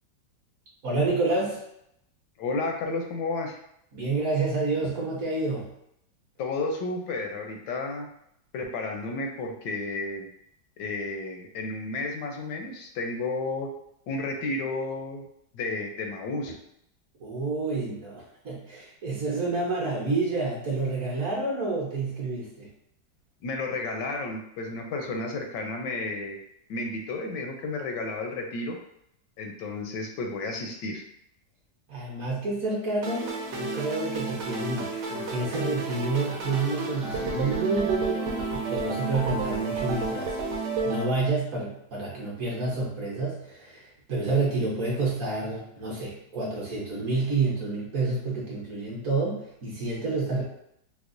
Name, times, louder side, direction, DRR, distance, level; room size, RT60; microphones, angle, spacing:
voice 1, 0.8-1.6 3.9-5.7 17.2-22.7 31.9-40.4 40.8-50.4, right 3 dB, 55° right, -5 dB, 1.0 m, -29 dB
voice 2, 2.4-3.6 6.4-8.1 8.5-10.3 10.8-13.7 14.1-15.3 15.5-16.5 23.4-26.4 26.7-28.8 29.4-31.0, left 3 dB, 80° left, 2 dB, 1.2 m, -32 dB
sound 1, 33.0-41.0, right 3 dB, 75° right, 1.2 m, -31 dB
4.7 x 2.0 x 2.5 m, 0.76 s
omnidirectional pair, 1.9 m